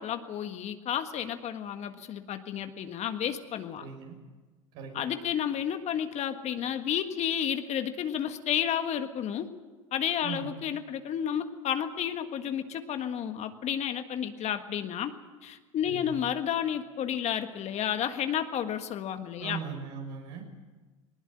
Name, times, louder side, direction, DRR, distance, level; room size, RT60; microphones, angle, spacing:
voice 1, 0.0-3.9 4.9-9.5 9.9-15.1 15.4-19.6, left 9 dB, 45° left, 8 dB, 1.6 m, -31 dB
voice 2, 3.8-4.2 4.7-4.9 10.2-10.6 15.8-16.2 19.4-20.4, right 6 dB, 65° right, 3 dB, 6.3 m, -39 dB
20.0 x 19.5 x 8.9 m, 1.3 s
hypercardioid pair, 85°, 16 cm